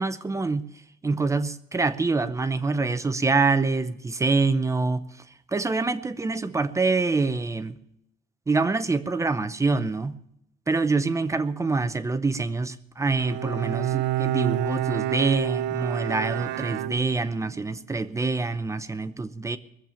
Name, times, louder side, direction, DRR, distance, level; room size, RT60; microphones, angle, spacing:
voice 1, 0.0-7.8 8.5-10.2 10.7-19.6, right 3 dB, 15° right, 0.7 m, -26 dB
Bowed string instrument, 13.1-17.5, right 15 dB, 85° right, 0.5 m, -28 dB
20.5 x 7.5 x 6.9 m
cardioid pair, 110°, 17 cm